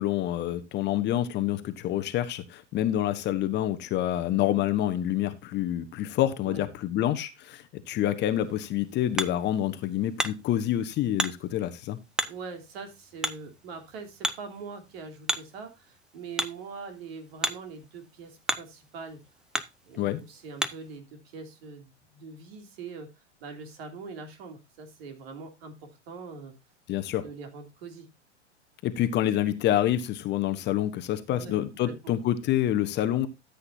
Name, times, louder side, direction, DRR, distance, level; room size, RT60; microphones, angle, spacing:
voice 1, 0.0-12.0 20.0-20.2 26.9-27.2 28.8-33.3, left 12 dB, 30° left, 9 dB, 1.0 m, -27 dB
Hammer, 8.3-21.0, right 1 dB, ahead, 0.5 m, -36 dB
voice 2, 12.2-19.2 19.8-23.1 23.4-26.5 27.2-28.1 31.3-32.1, right 4 dB, 55° right, 6 dB, 3.0 m, -43 dB
14.0 x 8.3 x 2.7 m, 0.23 s
hypercardioid pair, 105°, 36 cm